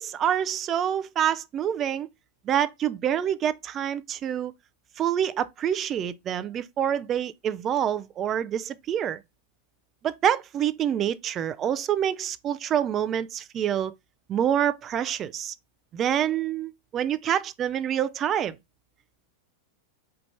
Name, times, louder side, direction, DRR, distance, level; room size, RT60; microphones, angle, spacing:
voice 1, 0.0-2.1 2.5-4.5 5.0-9.2 10.0-13.9 14.3-15.5 15.9-18.6, right 9 dB, 30° right, 0.4 m, -26 dB
4.4 x 2.5 x 3.3 m
figure-of-eight pair, 90°, 0 cm